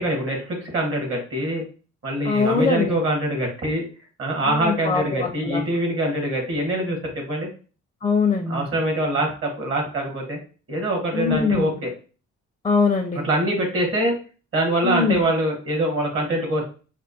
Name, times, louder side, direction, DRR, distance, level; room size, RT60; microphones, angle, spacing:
voice 1, 0.0-1.6 2.0-3.8 4.2-7.5 8.5-10.4 10.7-11.9 13.2-14.1 14.5-16.6, right 1 dB, 45° right, 1 dB, 1.4 m, -24 dB
voice 2, 2.2-3.0 4.4-5.6 8.0-8.6 11.1-11.7 12.6-13.2 14.8-15.2, left 5 dB, 15° left, 5 dB, 0.4 m, -22 dB
4.4 x 2.1 x 2.7 m, 0.37 s
cardioid pair, 90°, 30 cm